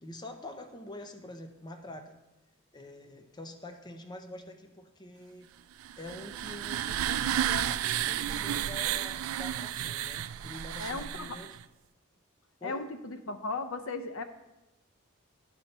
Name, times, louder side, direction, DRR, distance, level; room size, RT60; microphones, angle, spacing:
voice 1, 0.0-2.1 2.7-5.5 6.0-11.6 12.6-12.9, left 1 dB, 20° left, 5 dB, 0.6 m, -45 dB
sound 1, 5.8-11.6, right 10 dB, 80° right, 0.3 m, -32 dB
voice 2, 10.8-11.4 12.6-14.2, left 3 dB, 70° left, 9 dB, 0.6 m, -36 dB
11.5 x 4.3 x 5.3 m, 1.0 s
head